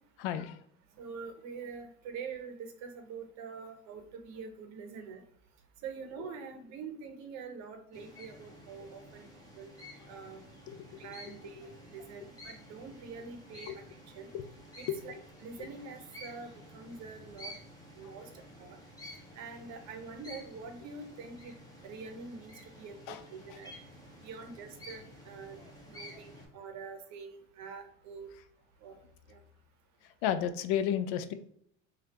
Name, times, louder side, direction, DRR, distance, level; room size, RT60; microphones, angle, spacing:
voice 1, 0.2-0.6 10.7-11.0 13.7-13.8 14.3-14.5 14.9-15.1 15.6-15.7 23.1-23.2 23.5-23.6 26.1-26.2 30.2-31.3, left 9 dB, 55° left, 11 dB, 0.5 m, -33 dB
voice 2, 1.0-5.2 5.8-9.3 9.5-9.8 10.1-10.4 11.0-13.8 14.1-14.3 14.8-15.2 15.4-17.5 18.0-18.3 18.6-18.8 19.4-21.5 21.8-23.7 24.2-28.3 28.8-29.0 29.3-29.4, right 5 dB, 45° right, 6 dB, 0.8 m, -45 dB
sound 1, 7.9-26.5, equal, 10° left, 0.9 m, -51 dB
3.1 x 2.4 x 2.9 m, 0.69 s
hypercardioid pair, 100°, 37 cm